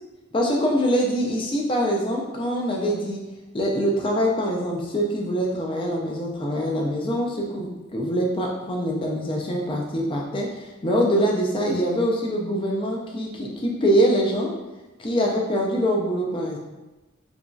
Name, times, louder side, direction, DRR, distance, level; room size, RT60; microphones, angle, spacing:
voice 1, 0.3-3.2 3.5-14.5 15.0-16.6, equal, 25° left, 0 dB, 0.3 m, -24 dB
2.9 x 2.6 x 2.2 m, 1.1 s
head